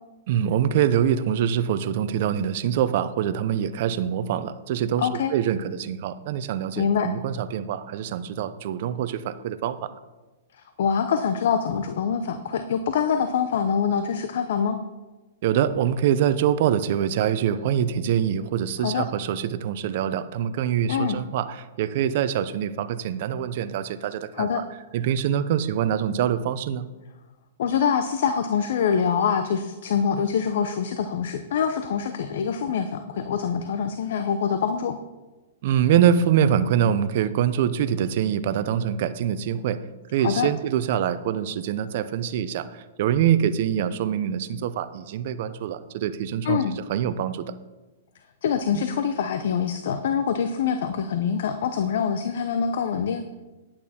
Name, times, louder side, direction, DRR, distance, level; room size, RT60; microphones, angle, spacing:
voice 1, 0.3-10.0 15.4-24.6 24.9-26.9 35.6-39.8 40.1-47.5 48.7-48.8, right 9 dB, 55° right, 13 dB, 0.7 m, -24 dB
voice 2, 5.0-5.3 6.8-7.1 10.8-14.8 18.8-19.1 20.9-21.2 24.3-24.6 27.6-35.0 40.2-40.5 46.4-46.8 48.4-53.3, left 7 dB, 65° left, 9 dB, 0.7 m, -25 dB
10.5 x 8.8 x 4.4 m, 1.2 s
hypercardioid pair, 130°, 0 cm